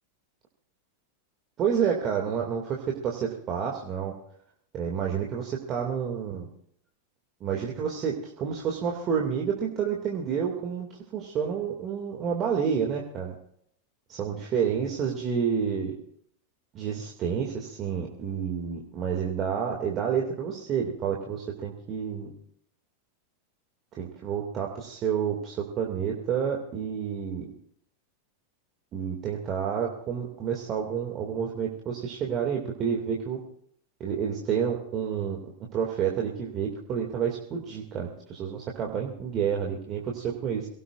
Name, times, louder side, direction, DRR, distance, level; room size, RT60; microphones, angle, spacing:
voice 1, 1.6-4.1 4.7-6.5 7.4-10.9 11.1-13.3 14.1-15.9 16.7-22.3 24.0-27.5 28.9-33.4 34.0-40.7, right 7 dB, 30° right, 0 dB, 2.2 m, -29 dB
23.0 x 18.0 x 2.5 m, 0.67 s
figure-of-eight pair, 90°, 0 cm